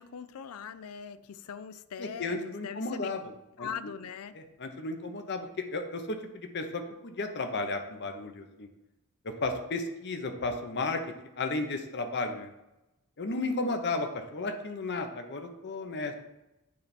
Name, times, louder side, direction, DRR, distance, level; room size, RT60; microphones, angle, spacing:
voice 1, 0.0-3.1 3.6-4.3, left 7 dB, 75° left, 14 dB, 0.4 m, -41 dB
voice 2, 2.0-3.2 3.6-3.7 4.3-8.7 9.2-11.0 11.4-12.5 13.2-16.1, left 3 dB, 50° left, 6 dB, 0.8 m, -33 dB
9.4 x 3.4 x 4.2 m, 0.94 s
head